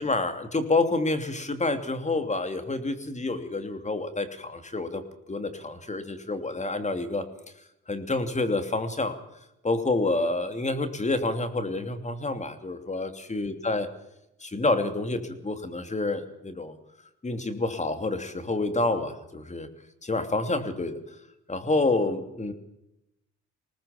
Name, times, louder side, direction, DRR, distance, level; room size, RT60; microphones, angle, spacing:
voice 1, 0.0-5.0 5.3-7.3 7.9-9.2 9.6-13.9 14.4-16.7 17.2-19.7 20.0-21.2 21.5-22.5, left 2 dB, 25° left, 9 dB, 2.9 m, -28 dB
21.0 x 19.0 x 7.2 m, 0.85 s
cardioid pair, 90°, 30 cm